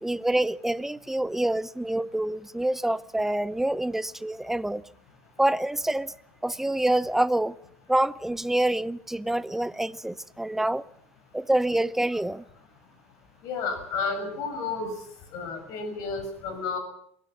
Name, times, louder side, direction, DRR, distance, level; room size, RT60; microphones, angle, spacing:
voice 1, 0.0-4.8 5.4-6.1 6.4-7.6 7.9-10.8 11.3-12.4, right 1 dB, 5° right, 0.7 m, -26 dB
voice 2, 13.4-14.9 15.3-16.8, left 4 dB, 55° left, 6.5 m, -31 dB
23.0 x 17.0 x 7.3 m
hypercardioid pair, 80°, 7 cm